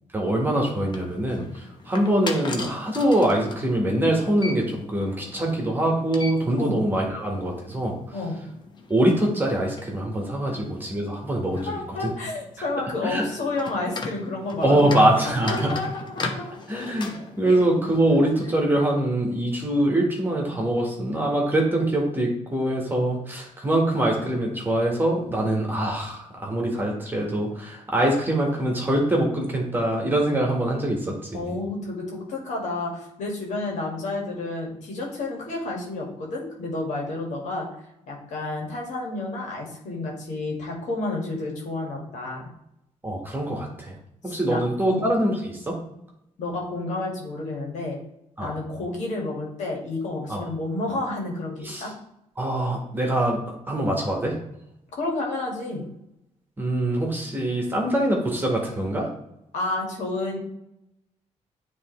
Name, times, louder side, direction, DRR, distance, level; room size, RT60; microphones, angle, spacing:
voice 1, 0.1-7.9 8.9-12.1 13.0-13.2 14.6-15.7 16.7-31.6 43.0-43.9 44.2-45.8 48.4-48.5 50.3-50.4 51.6-51.8 52.4-53.4 53.7-54.3 56.6-59.1, right 1 dB, 15° right, -1 dB, 1.6 m, -24 dB
sound 1, 0.5-18.5, left 3 dB, 35° left, 0.9 m, -39 dB
voice 2, 11.7-16.6 31.3-37.7 38.1-42.5 44.3-44.6 44.9-45.0 46.4-48.0 48.4-51.9 55.0-55.8 59.5-60.4, left 2 dB, 75° left, -1 dB, 2.1 m, -30 dB
9.7 x 3.4 x 3.2 m, 0.82 s
cardioid pair, 135°, 13 cm